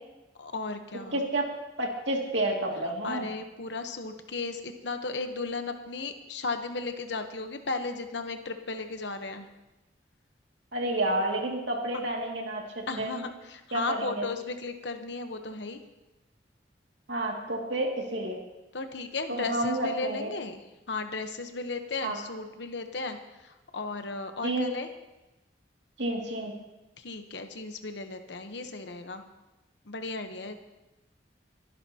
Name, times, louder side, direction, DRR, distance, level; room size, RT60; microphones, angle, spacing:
voice 1, 0.4-1.2 3.0-9.5 11.9-12.0 12.9-15.8 18.7-20.6 20.9-23.2 23.4-24.9 27.0-29.2 29.9-30.6, left 3 dB, 70° left, 7 dB, 1.0 m, -35 dB
voice 2, 1.1-1.4 1.8-3.3 10.7-12.6 13.0-13.2 13.7-14.3 17.1-18.4 19.3-20.3 22.0-22.2 24.4-24.7 26.0-26.5, right 1 dB, 75° right, 0 dB, 2.4 m, -30 dB
28.0 x 11.0 x 2.9 m, 1.0 s
head